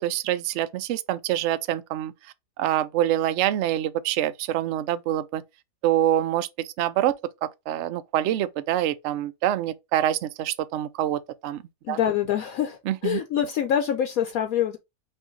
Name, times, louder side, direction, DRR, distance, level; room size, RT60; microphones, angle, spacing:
voice 1, 0.0-2.1 2.6-5.4 5.8-7.1 7.4-11.6 11.9-12.0 12.9-13.2, right 12 dB, 75° right, 0.6 m, -25 dB
voice 2, 11.8-14.8, left 9 dB, 70° left, 1.0 m, -25 dB
5.6 x 2.5 x 3.7 m
omnidirectional pair, 1.7 m